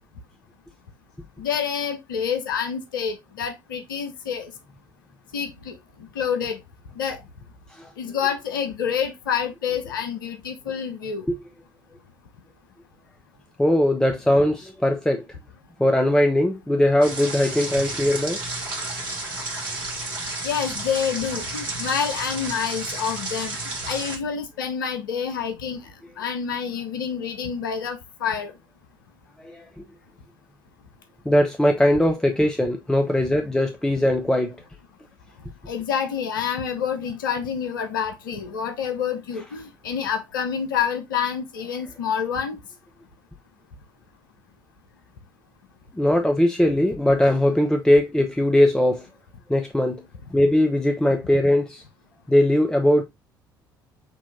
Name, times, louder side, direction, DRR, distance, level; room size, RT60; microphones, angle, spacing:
voice 1, 1.4-4.5 5.3-5.8 6.1-6.6 7.0-7.2 8.0-11.3 20.4-23.6 23.9-25.8 26.2-28.5 35.7-42.6, left 7 dB, 75° left, 0.7 m, -27 dB
voice 2, 13.6-15.2 15.8-18.4 29.4-29.7 31.2-34.6 45.9-49.1 49.5-50.0 50.3-51.8 52.3-53.0, left 1 dB, 5° left, 0.7 m, -20 dB
sound 1, 17.0-24.2, right 2 dB, 70° right, 1.5 m, -32 dB
6.1 x 3.0 x 2.7 m
figure-of-eight pair, 50°, 11 cm